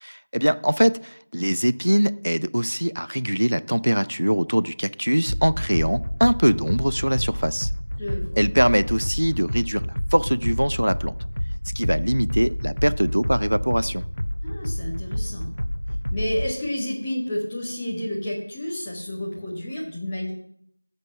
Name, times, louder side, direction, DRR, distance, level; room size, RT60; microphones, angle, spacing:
voice 1, 0.0-7.7 8.4-9.8 10.1-11.1 11.8-14.0, equal, 90° right, 16 dB, 0.6 m, -22 dB
sound 1, 5.3-16.5, equal, 75° left, 0.6 m, -29 dB
voice 2, 8.0-8.5 14.4-15.5 16.1-20.3, left 1 dB, 5° left, -8 dB, 0.5 m, -30 dB
13.5 x 5.3 x 7.5 m, 0.71 s
figure-of-eight pair, 180°, 0 cm